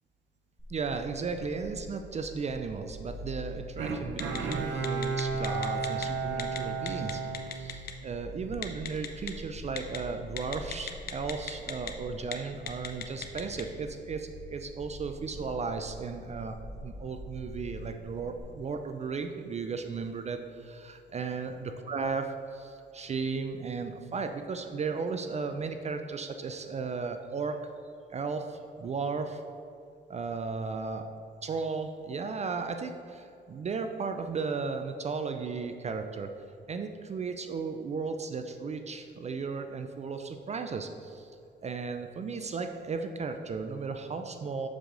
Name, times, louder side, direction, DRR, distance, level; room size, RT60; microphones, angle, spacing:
sound 1, 0.6-18.4, left 1 dB, 15° left, 1.3 m, -46 dB
voice 1, 0.7-27.6 28.1-29.4 30.1-31.1 31.4-36.3 36.7-41.3 41.6-44.7, right 4 dB, 35° right, 7 dB, 0.4 m, -35 dB
Bowed string instrument, 3.8-8.3 8.7-8.8, right 4 dB, 70° right, 0.7 m, -33 dB
Telephone, 4.2-4.5 4.8-6.1 6.4-6.6 6.9-7.9 8.6-9.3 9.8-10.0 10.4-11.9 12.2-12.3 12.7-13.6, left 9 dB, 50° left, 0.6 m, -36 dB
6.7 x 4.7 x 3.8 m, 2.6 s
cardioid pair, 90°, 20 cm